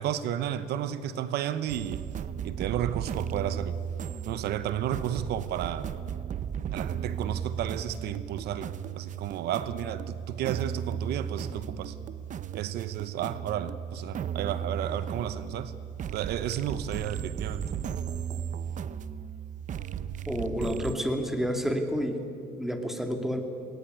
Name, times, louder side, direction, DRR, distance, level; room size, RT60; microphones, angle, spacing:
voice 1, 0.0-2.0 2.4-3.8 4.3-5.9 6.7-11.9 12.5-15.7 16.1-17.6, right 10 dB, 75° right, 13 dB, 0.9 m, -32 dB
sound 1, 1.7-21.0, right 8 dB, 50° right, 0.8 m, -35 dB
voice 2, 20.3-22.2 22.6-23.4, equal, ahead, 4 dB, 2.5 m, -29 dB
20.0 x 19.5 x 9.3 m, 2.6 s
cardioid pair, 110°, 17 cm